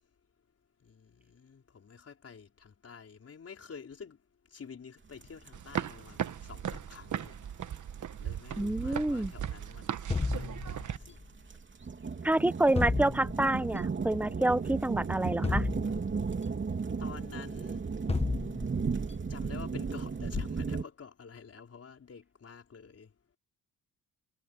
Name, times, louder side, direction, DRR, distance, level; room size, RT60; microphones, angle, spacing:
voice 1, 0.8-4.2 4.5-7.5 8.2-11.2 17.0-17.8 19.3-23.1, left 6 dB, 45° left, 4.7 m, -47 dB
sound 1, 5.2-5.3 5.5-20.8, right 5 dB, 35° right, 3.1 m, -35 dB
sound 2, 5.5-11.0, right 9 dB, 60° right, 1.1 m, -37 dB
voice 2, 8.6-9.3 12.2-15.7, right 1 dB, 5° right, 0.7 m, -28 dB
sound 3, 10.1-11.2 12.8-13.7 15.4-16.5 18.1-19.1, left 3 dB, 15° left, 1.5 m, -32 dB
wide cardioid pair, 140°, 35 cm